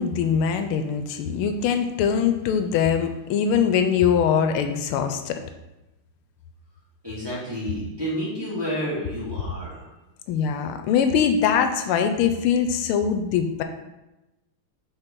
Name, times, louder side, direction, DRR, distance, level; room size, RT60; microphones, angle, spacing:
voice 1, 0.0-5.4 10.3-13.6, left 7 dB, 85° left, 7 dB, 1.5 m, -22 dB
voice 2, 7.0-9.9, equal, 10° right, -10 dB, 2.2 m, -30 dB
6.7 x 4.0 x 4.5 m, 1.0 s
omnidirectional pair, 2.3 m